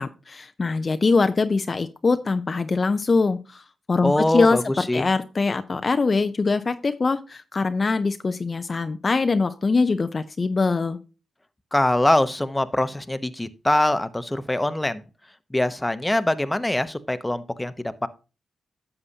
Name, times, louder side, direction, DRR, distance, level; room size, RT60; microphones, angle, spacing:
voice 1, 0.0-3.6 3.9-11.0, left 4 dB, 45° left, 10 dB, 0.6 m, -23 dB
voice 2, 4.0-5.1 11.7-15.0 15.5-18.1, left 1 dB, 15° left, 11 dB, 0.9 m, -23 dB
11.0 x 6.9 x 2.8 m, 0.32 s
supercardioid pair, 45°, 0 cm